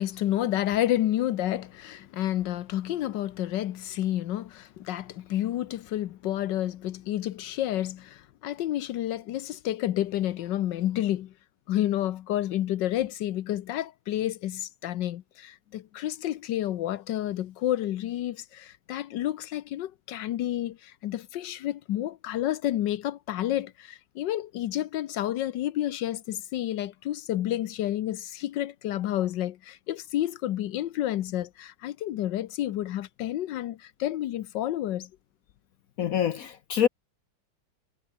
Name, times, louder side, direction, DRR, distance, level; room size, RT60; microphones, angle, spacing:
voice 1, 0.0-11.3 11.7-35.1, left 13 dB, 85° left, 1.5 m, -30 dB
voice 2, 36.0-36.9, left 9 dB, 60° left, 1.0 m, -25 dB
omnidirectional pair, 1.9 m